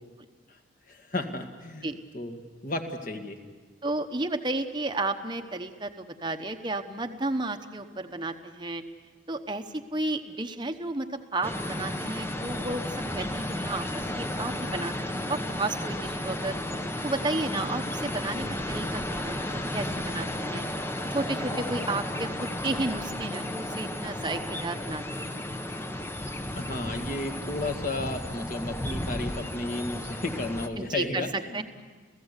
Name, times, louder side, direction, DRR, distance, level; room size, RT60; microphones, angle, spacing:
voice 1, 0.9-3.4 26.6-31.6, left 2 dB, 40° left, 5 dB, 1.9 m, -33 dB
voice 2, 3.8-8.8 9.3-16.6 17.0-20.7 21.1-22.3 22.6-25.4 30.8-31.6, right 2 dB, 25° right, 6 dB, 1.0 m, -32 dB
sound 1, 11.4-30.7, left 1 dB, 10° left, 0.9 m, -33 dB
29.5 x 16.0 x 8.2 m, 1.5 s
head